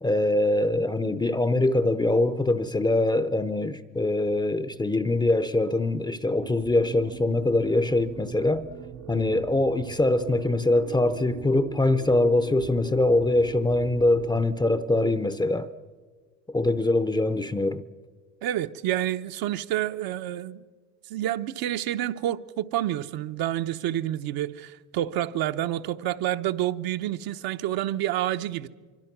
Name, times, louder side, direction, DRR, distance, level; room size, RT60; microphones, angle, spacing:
voice 1, 0.0-8.7 9.1-15.7 16.5-17.8, left 2 dB, 10° left, 0.6 m, -23 dB
sound 1, 6.4-14.4, right 10 dB, 75° right, 1.4 m, -41 dB
voice 2, 18.4-20.6 21.1-28.7, right 13 dB, 60° right, 0.9 m, -28 dB
25.0 x 24.0 x 6.0 m
cardioid pair, 120°, 41 cm